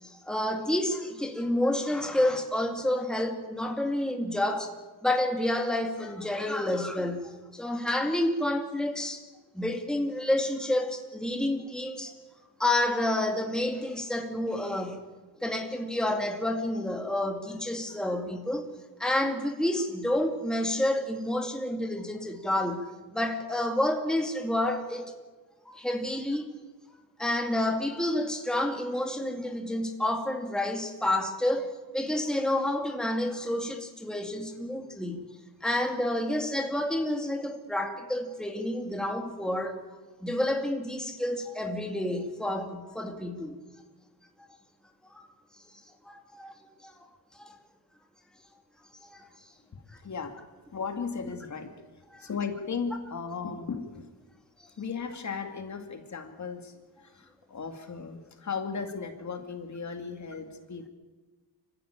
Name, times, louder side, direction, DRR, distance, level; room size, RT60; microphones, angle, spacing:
voice 1, 0.0-4.7 5.0-9.2 9.5-12.1 12.6-15.1 15.4-18.7 19.0-25.1 25.7-26.5 27.2-35.3 35.6-39.8 40.2-43.6 45.1-45.3 46.1-46.5 46.8-46.9 47.4-47.6 49.0-49.2 52.1-52.3, left 1 dB, ahead, 4 dB, 2.2 m, -29 dB
voice 2, 49.7-50.4 50.7-54.1 54.8-60.9, left 5 dB, 45° left, 6 dB, 2.5 m, -36 dB
26.0 x 15.5 x 8.8 m, 1.3 s
cardioid pair, 120°, 39 cm